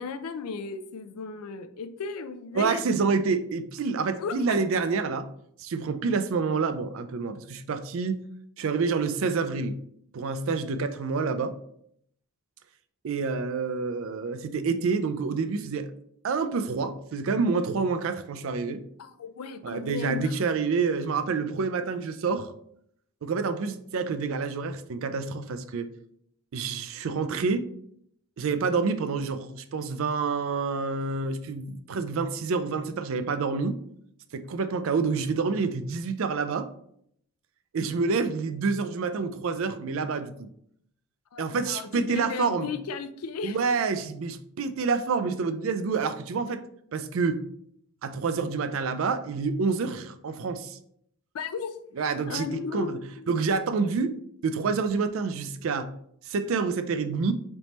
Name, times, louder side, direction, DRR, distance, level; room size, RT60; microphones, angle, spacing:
voice 1, 0.0-2.8 4.2-4.6 19.0-20.3 41.3-43.6 51.3-53.0, left 5 dB, 85° left, 10 dB, 0.4 m, -35 dB
voice 2, 2.5-5.3 5.6-8.2 8.6-9.8 10.1-11.6 13.0-15.9 16.2-18.8 19.6-22.5 23.2-25.9 26.5-27.7 28.4-33.8 34.3-36.7 37.7-40.5 41.4-42.7 43.4-46.6 46.9-47.4 48.0-50.8 51.9-54.1 54.4-55.9 56.2-57.3, right 4 dB, 65° right, 10 dB, 0.4 m, -28 dB
4.1 x 3.4 x 3.0 m, 0.69 s
head